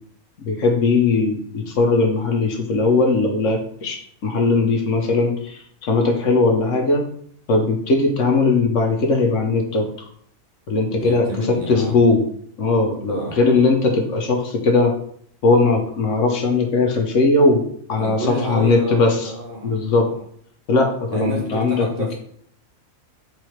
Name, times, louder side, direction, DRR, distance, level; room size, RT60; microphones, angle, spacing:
voice 1, 0.4-7.1 7.5-9.9 10.7-12.2 12.6-14.9 15.4-19.1 19.6-20.1 20.7-21.9, left 3 dB, 65° left, 3 dB, 1.1 m, -19 dB
voice 2, 10.9-12.0 13.1-13.7 17.9-20.2 21.1-22.2, right 1 dB, 50° right, 0 dB, 0.8 m, -30 dB
3.6 x 3.3 x 4.4 m, 0.64 s
omnidirectional pair, 1.4 m